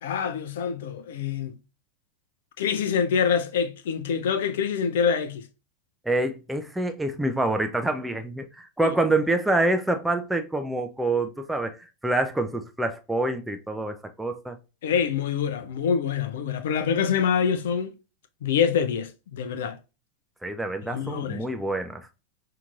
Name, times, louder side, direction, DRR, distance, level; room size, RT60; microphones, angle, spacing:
voice 1, 0.0-1.5 2.6-5.5 8.8-8.9 14.8-18.0 18.4-19.8 20.9-21.4, left 7 dB, 55° left, 0.5 m, -25 dB
voice 2, 6.1-11.8 12.0-14.6 20.4-22.1, right 2 dB, 5° right, 0.5 m, -26 dB
5.8 x 2.8 x 2.4 m
figure-of-eight pair, 90°, 0 cm